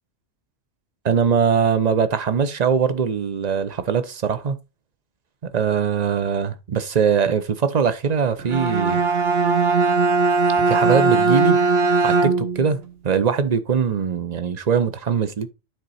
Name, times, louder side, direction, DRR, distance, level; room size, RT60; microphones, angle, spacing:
voice 1, 1.0-4.6 5.5-9.0 10.7-11.6 12.0-12.8 13.0-15.5, right 6 dB, 40° right, 0.8 m, -21 dB
Bowed string instrument, 8.4-12.7, right 3 dB, 60° right, 1.2 m, -19 dB
9.6 x 4.1 x 4.2 m
omnidirectional pair, 1.3 m